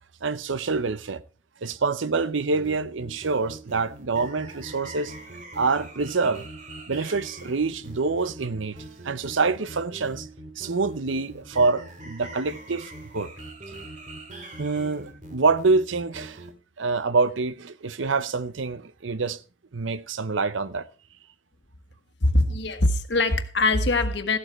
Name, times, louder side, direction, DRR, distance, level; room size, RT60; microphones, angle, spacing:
voice 1, 0.2-1.2 1.6-5.1 5.5-6.5 6.9-10.3 10.6-13.3 14.6-16.4 16.8-19.4 19.7-20.9, right 4 dB, 80° right, 0.7 m, -26 dB
sound 1, 2.4-16.5, right 1 dB, 40° right, 2.4 m, -42 dB
voice 2, 22.2-24.4, left 2 dB, 60° left, 1.5 m, -22 dB
15.0 x 12.5 x 3.1 m
head